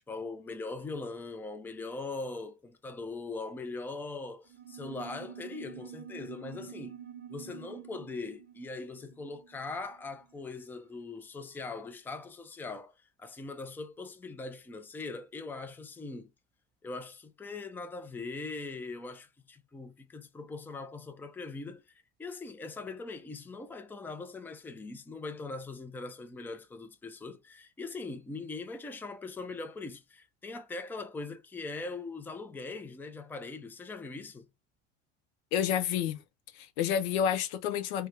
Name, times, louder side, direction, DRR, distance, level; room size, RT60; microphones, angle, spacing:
voice 1, 0.1-7.0 7.3-16.3 16.8-21.8 22.2-34.5, left 3 dB, 5° left, 0.4 m, -41 dB
sound 1, 4.5-10.4, right 9 dB, 30° right, 0.7 m, -48 dB
voice 2, 35.5-36.2 36.5-38.1, left 9 dB, 85° left, 0.6 m, -29 dB
2.2 x 2.2 x 3.1 m
supercardioid pair, 100°, 32 cm